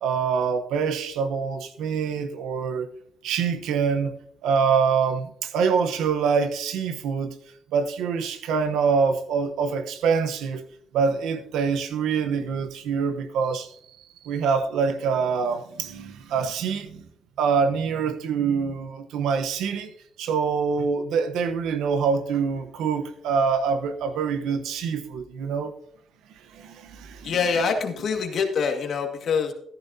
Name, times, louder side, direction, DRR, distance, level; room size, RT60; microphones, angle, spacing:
voice 1, 0.0-2.9 3.2-4.1 4.4-7.4 7.7-10.6 10.9-17.1 17.4-19.9 20.2-25.7 26.5-27.7, right 6 dB, 85° right, 1.0 m, -25 dB
voice 2, 27.2-29.5, left 5 dB, 60° left, 2.0 m, -25 dB
14.0 x 11.0 x 2.8 m
cardioid pair, 90°, 0 cm